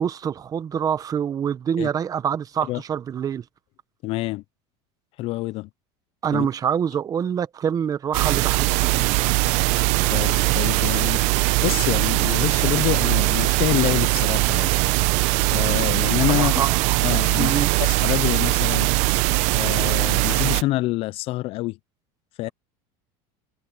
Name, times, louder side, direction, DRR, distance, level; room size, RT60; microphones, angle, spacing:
voice 1, 0.0-3.4 6.2-9.1 16.4-17.0 17.4-17.7, right 8 dB, 25° right, 1.0 m, -26 dB
voice 2, 4.0-4.4 5.2-5.7 6.3-6.5 10.1-11.2 11.6-14.7 15.5-16.5 17.0-18.9 19.5-21.8 22.4-22.5, left 18 dB, 45° left, 0.4 m, -26 dB
sound 1, 8.1-20.6, right 23 dB, 60° right, 0.7 m, -21 dB
supercardioid pair, 140°, 14 cm